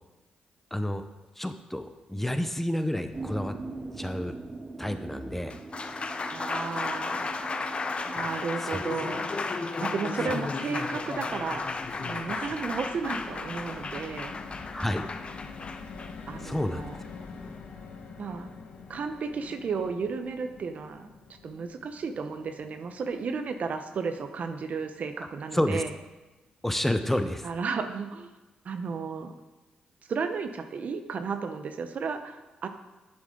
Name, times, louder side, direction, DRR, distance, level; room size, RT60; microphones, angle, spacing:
voice 1, 0.7-1.0 1.4-3.5 4.0-4.4 4.8-5.6 8.6-8.8 14.7-15.1 16.4-16.9 25.5-25.8 26.6-27.5, left 1 dB, 10° left, 8 dB, 0.8 m, -29 dB
sound 1, 3.1-9.7, right 3 dB, 30° right, 0.7 m, -42 dB
Applause, 5.3-17.6, left 3 dB, 40° left, 0.8 m, -34 dB
voice 2, 6.3-7.3 8.1-9.3 9.8-11.7 12.0-14.4 16.3-17.0 18.2-18.5 18.9-21.1 21.4-25.9 27.4-28.3 28.6-29.3 30.1-32.7, right 5 dB, 60° right, 8 dB, 0.8 m, -33 dB
sound 2, 10.5-26.4 26.8-26.9 27.2-27.4, left 4 dB, 70° left, 1.4 m, -47 dB
9.8 x 7.4 x 3.9 m, 1.1 s
supercardioid pair, 50°, 3 cm